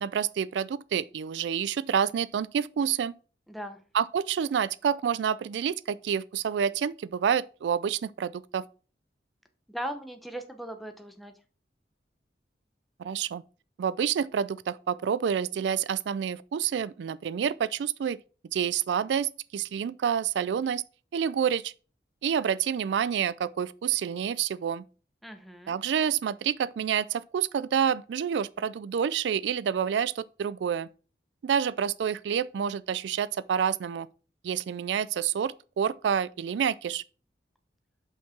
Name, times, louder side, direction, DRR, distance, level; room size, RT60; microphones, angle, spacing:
voice 1, 0.0-3.1 3.9-8.6 13.0-13.4 13.8-18.2 18.5-20.8 21.1-21.7 22.2-24.8 25.7-30.9 31.4-34.1 34.4-37.0, right 8 dB, 85° right, 0.3 m, -28 dB
voice 2, 3.5-3.8 9.7-11.3 25.2-25.8, right 1 dB, ahead, 0.8 m, -38 dB
5.6 x 4.5 x 5.8 m
head